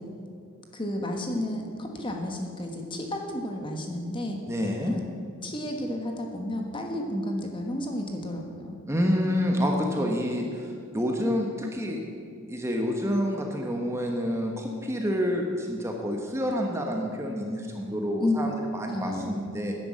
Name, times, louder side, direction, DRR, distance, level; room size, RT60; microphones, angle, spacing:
voice 1, 0.7-4.4 4.9-5.0 5.4-8.7 18.2-18.5 18.9-19.5, left 1 dB, 25° left, 2 dB, 1.3 m, -31 dB
voice 2, 4.5-5.0 8.9-12.0 12.5-19.8, equal, 10° right, 1 dB, 1.0 m, -28 dB
10.5 x 10.0 x 7.3 m, 2.4 s
head